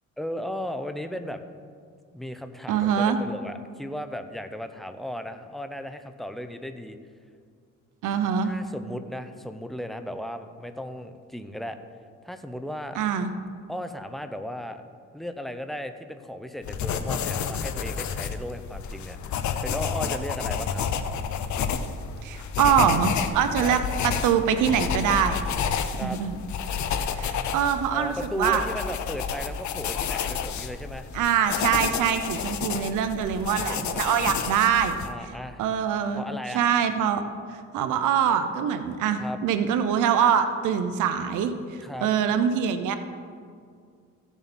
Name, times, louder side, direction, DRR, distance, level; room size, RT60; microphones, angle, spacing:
voice 1, 0.2-1.4 2.1-7.0 8.4-11.8 12.2-13.0 13.7-14.8 15.1-20.8 23.6-23.8 25.9-26.2 27.9-31.1 33.5-34.0 35.0-35.6 36.1-36.7 39.2-39.4 41.8-42.1, equal, ahead, 8 dB, 0.7 m, -35 dB
voice 2, 2.7-3.2 8.0-8.5 13.0-13.3 22.2-25.4 26.0-26.4 27.2-28.6 31.1-34.9 35.2-35.3 35.6-36.2 36.5-37.2 37.5-43.0, right 8 dB, 85° right, 9 dB, 0.8 m, -24 dB
sound 1, 16.6-35.1, left 7 dB, 70° left, 0.8 m, -30 dB
15.5 x 7.2 x 4.3 m, 2.1 s
cardioid pair, 90°, 30 cm